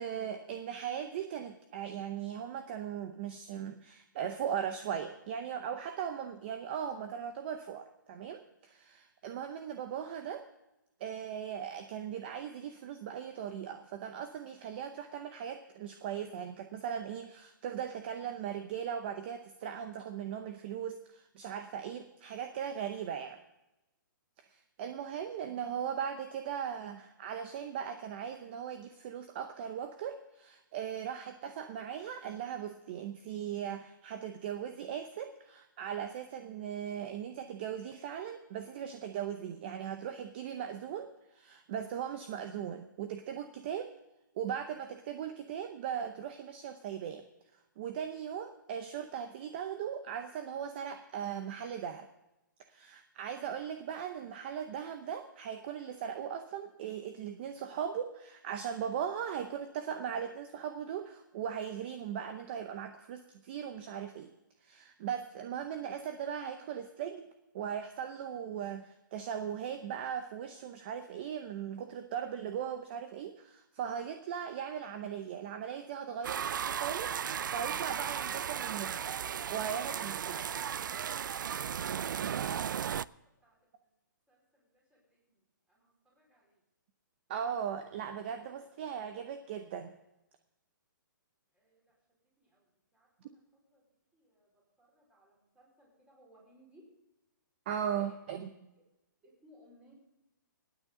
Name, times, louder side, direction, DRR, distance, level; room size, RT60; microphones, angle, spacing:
voice 1, 0.0-10.4 11.0-23.4 24.8-41.1 41.3-43.9 44.4-47.2 47.8-52.1 52.7-64.3 64.6-67.3 67.5-79.0 79.5-80.4 87.3-89.9 97.7-98.5, right 8 dB, 30° right, 8 dB, 0.7 m, -38 dB
sound 1, 76.2-83.1, right 8 dB, 70° right, 0.4 m, -35 dB
voice 2, 84.3-85.4 85.7-86.6 91.5-91.9 92.4-92.6 92.9-93.4 93.7-93.8 94.1-94.5 94.8-96.9 98.0-98.2 98.8-98.9 99.2-99.9, equal, 10° right, -3 dB, 4.7 m, -63 dB
26.0 x 9.2 x 3.7 m, 0.95 s
hypercardioid pair, 165°, 11 cm